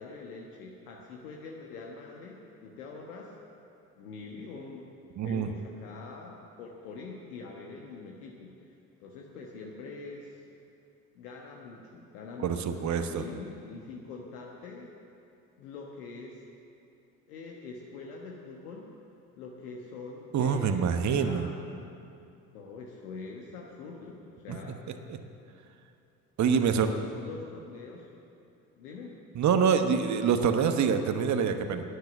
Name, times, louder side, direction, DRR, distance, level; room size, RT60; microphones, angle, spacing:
voice 1, 0.0-3.3 4.0-4.9 5.2-8.7 9.0-10.4 11.1-14.9 15.6-16.4 17.3-18.9 19.4-21.5 22.5-24.8 26.5-28.1 28.8-29.1, left 4 dB, 70° left, -1 dB, 1.4 m, -44 dB
voice 2, 5.2-5.5 12.4-13.2 20.3-21.5 24.5-24.6 25.1-25.2 26.4-26.9 29.3-31.8, right 6 dB, 35° right, 8 dB, 1.1 m, -26 dB
13.0 x 10.5 x 8.1 m, 2.6 s
figure-of-eight pair, 55°, 47 cm